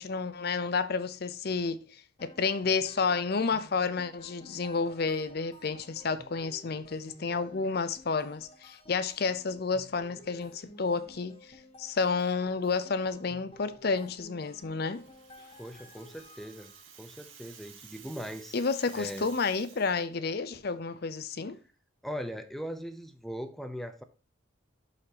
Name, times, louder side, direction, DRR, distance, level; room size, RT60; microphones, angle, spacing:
voice 1, 0.0-11.4 11.8-15.0 18.5-21.6, left 4 dB, 50° left, 0.5 m, -30 dB
sound 1, 2.2-16.9, left 1 dB, 30° left, 1.1 m, -54 dB
Rattle (instrument), 14.8-20.0, right 7 dB, 75° right, 2.0 m, -53 dB
voice 2, 15.6-16.7 17.0-18.6 19.0-19.3 22.0-24.0, equal, ahead, 0.6 m, -39 dB
11.5 x 4.3 x 2.8 m
head